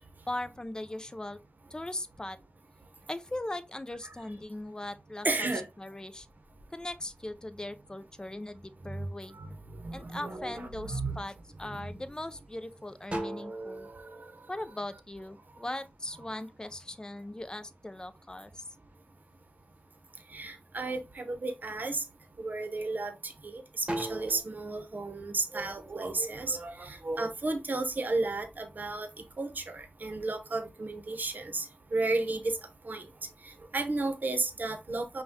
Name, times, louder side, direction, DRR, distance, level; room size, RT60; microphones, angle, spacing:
voice 1, 0.3-1.4 1.7-2.4 3.1-5.5 5.8-6.3 6.7-9.4 9.9-13.9 14.5-18.6, left 1 dB, 20° left, 0.4 m, -39 dB
voice 2, 5.2-5.6 8.9-9.0 9.4-9.5 9.8-11.1 11.7-11.9 20.3-22.0 22.4-29.1 29.4-31.7 31.9-32.6 32.8-33.0 33.7-35.2, right 2 dB, 55° right, 0.7 m, -33 dB
sound 1, 6.1-8.0 8.6-9.2 9.7-10.3 10.7-11.6 12.1-12.2 12.6-15.5 15.8-18.1 18.5-19.5 19.9-20.5 21.1-21.3 21.7-23.4 23.7-24.4, right 1 dB, 30° right, 1.0 m, -40 dB
5.5 x 2.2 x 2.7 m
wide cardioid pair, 75°, 4 cm